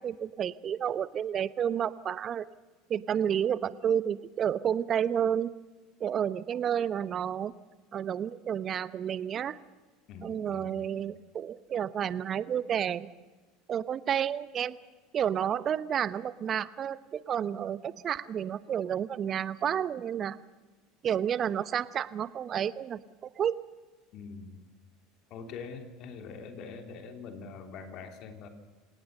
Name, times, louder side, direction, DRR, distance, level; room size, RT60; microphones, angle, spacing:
voice 1, 0.0-2.5 2.9-5.5 6.0-7.5 7.9-9.6 10.2-13.1 13.7-14.8 15.1-20.4 21.0-23.6, right 9 dB, 40° right, 16 dB, 1.0 m, -30 dB
voice 2, 10.1-10.9 24.1-24.6 25.3-28.5, left 5 dB, 55° left, 5 dB, 3.4 m, -44 dB
28.0 x 18.5 x 6.7 m, 1.3 s
hypercardioid pair, 75°, 0 cm